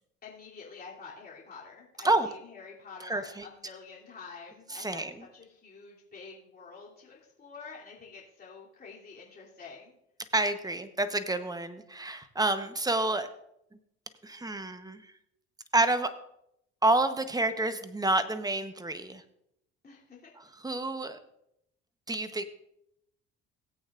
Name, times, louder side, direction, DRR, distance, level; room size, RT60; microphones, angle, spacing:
voice 1, 0.2-9.9 19.8-20.3, left 5 dB, 30° left, -5 dB, 3.1 m, -48 dB
voice 2, 3.0-3.5 4.7-5.3 10.3-13.3 14.2-15.1 15.7-16.1 16.8-19.2 20.4-21.2 22.1-22.4, right 2 dB, 10° right, 10 dB, 1.0 m, -29 dB
17.5 x 8.5 x 2.5 m, 0.78 s
supercardioid pair, 75°, 30 cm